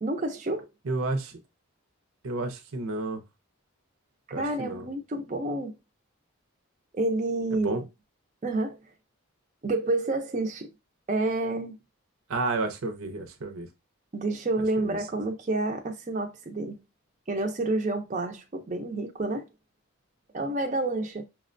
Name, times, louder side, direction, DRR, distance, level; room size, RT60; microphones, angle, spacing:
voice 1, 0.0-0.7 4.3-5.7 6.9-7.8 8.4-8.8 9.6-10.7 11.1-11.7 14.1-16.8 17.3-19.4 20.3-21.2, right 2 dB, 35° right, 0.4 m, -29 dB
voice 2, 0.9-1.3 2.2-3.2 4.3-4.9 7.5-7.8 12.3-13.7 14.8-15.0, right 3 dB, 75° right, 0.6 m, -31 dB
5.7 x 2.1 x 2.5 m
head